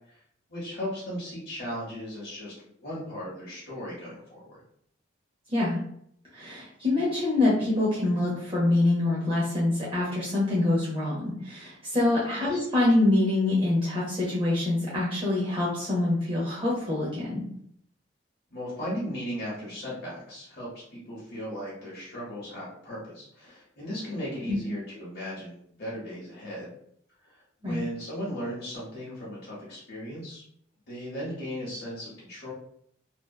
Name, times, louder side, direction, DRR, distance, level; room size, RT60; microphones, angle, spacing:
voice 1, 0.5-2.5 2.8-4.4 12.3-12.6 18.5-26.7 27.2-27.3 27.6-30.4 30.9-32.5, equal, 60° left, -6 dB, 0.8 m, -36 dB
voice 2, 6.3-17.4 24.5-24.6 27.6-27.8, left 2 dB, 30° right, -7 dB, 0.6 m, -25 dB
2.6 x 2.2 x 2.2 m, 0.68 s
head